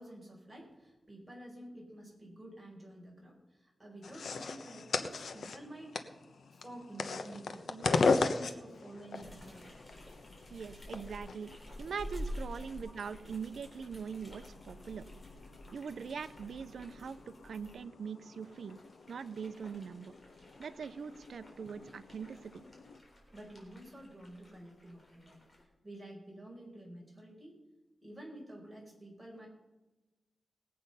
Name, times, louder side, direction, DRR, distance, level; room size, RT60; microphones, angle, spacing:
voice 1, 0.0-6.0 6.6-8.0 8.3-9.7 10.9-11.0 12.8-12.9 23.3-25.4 25.8-27.6 28.0-29.5, right 1 dB, 10° right, -2 dB, 5.0 m, -50 dB
sound 1, 4.0-23.0, left 4 dB, 80° left, 1.0 m, -39 dB
sound 2, 9.1-17.8 18.3-25.6, equal, 30° left, 4.0 m, -50 dB
voice 2, 10.5-15.0 15.7-18.8 19.1-20.1 20.6-22.7, right 6 dB, 85° right, 13 dB, 0.6 m, -42 dB
19.5 x 8.5 x 5.6 m, 1.1 s
wide cardioid pair, 130°, 0 cm